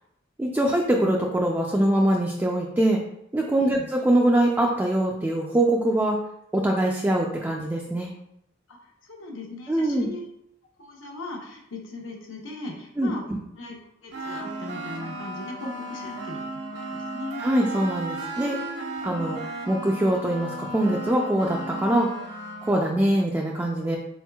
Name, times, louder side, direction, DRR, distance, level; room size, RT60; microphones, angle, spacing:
voice 1, 0.4-3.0 3.3-6.2 6.5-8.1 9.7-10.1 13.0-13.4 17.4-18.6 19.0-19.4 19.7-22.1 22.6-24.0, right 1 dB, 10° right, -1 dB, 0.3 m, -23 dB
voice 2, 8.7-10.3 10.8-13.2 13.6-13.7 14.0-17.4, left 2 dB, 75° left, 0 dB, 0.9 m, -39 dB
sound 1, 14.1-22.9, right 2 dB, 60° right, 0.9 m, -35 dB
4.4 x 4.0 x 2.3 m, 0.76 s
head